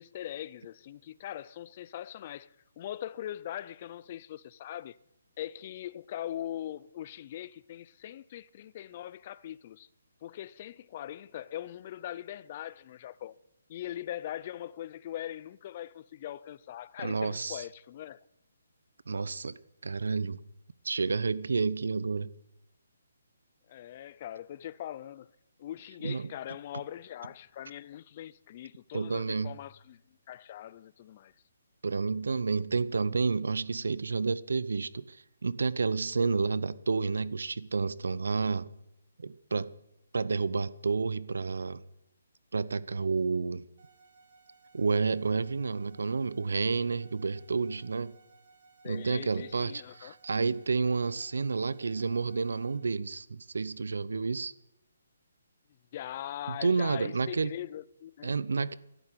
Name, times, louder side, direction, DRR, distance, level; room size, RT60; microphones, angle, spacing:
voice 1, 0.0-5.0 5.4-9.9 10.2-13.3 13.7-18.2 23.7-25.3 25.6-30.0 30.3-31.3 48.8-50.1 55.9-58.3, left 12 dB, 30° left, 0.4 m, -41 dB
voice 2, 17.0-17.6 19.1-20.4 20.8-22.3 26.0-26.3 28.9-29.6 31.8-38.7 39.2-39.7 40.1-41.8 42.5-43.6 44.7-48.2 48.8-54.5 56.5-57.5 58.2-58.7, right 4 dB, 80° right, 0.8 m, -30 dB
sound 1, 43.8-52.8, right 4 dB, 55° right, 2.7 m, -61 dB
12.5 x 11.0 x 9.2 m
hypercardioid pair, 165°, 0 cm